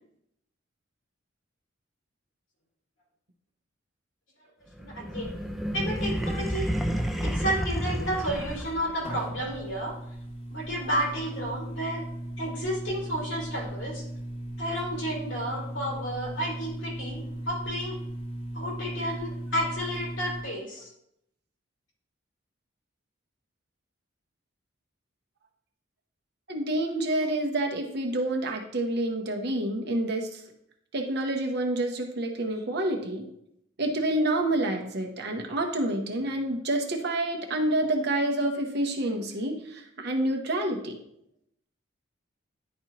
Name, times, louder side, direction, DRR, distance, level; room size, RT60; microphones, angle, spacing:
voice 1, 4.8-5.3 5.7-9.9 10.5-12.0 12.4-14.0 14.6-18.0 18.5-20.9, equal, 65° left, -3 dB, 2.7 m, -32 dB
sound 1, 4.8-9.0, equal, ahead, 0.4 m, -30 dB
sound 2, 5.2-20.4, right 1 dB, 30° left, 1.0 m, -38 dB
voice 2, 26.5-30.4 30.9-33.3 33.8-41.0, right 1 dB, 55° right, 3 dB, 0.9 m, -28 dB
10.5 x 4.3 x 2.9 m, 0.75 s
head